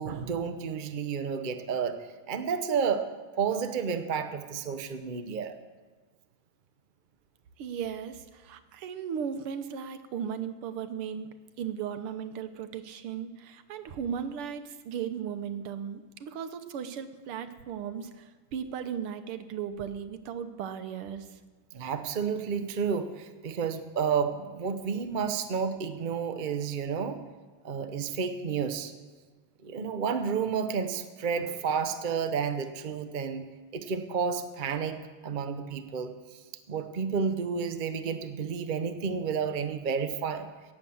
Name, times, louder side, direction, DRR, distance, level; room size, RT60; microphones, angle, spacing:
voice 1, 0.0-2.0 2.3-3.1 3.4-5.5 21.7-27.2 27.6-28.9 29.6-33.4 33.7-36.1 36.7-40.5, right 6 dB, 65° right, 8 dB, 0.5 m, -31 dB
voice 2, 7.6-11.3 11.6-21.4, right 8 dB, 85° right, 10 dB, 1.8 m, -36 dB
17.5 x 7.9 x 7.1 m, 1.3 s
omnidirectional pair, 2.4 m